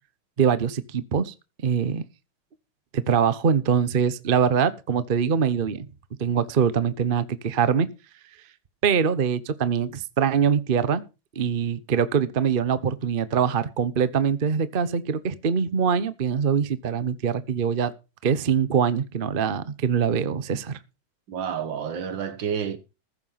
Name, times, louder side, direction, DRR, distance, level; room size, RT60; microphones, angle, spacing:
voice 1, 0.4-1.3 1.6-2.0 2.9-5.9 6.2-7.9 8.8-11.0 11.4-17.9 18.2-20.8, right 7 dB, 45° right, 0.7 m, -23 dB
voice 2, 21.3-22.8, right 7 dB, 70° right, 2.0 m, -29 dB
15.0 x 7.5 x 5.7 m
omnidirectional pair, 2.2 m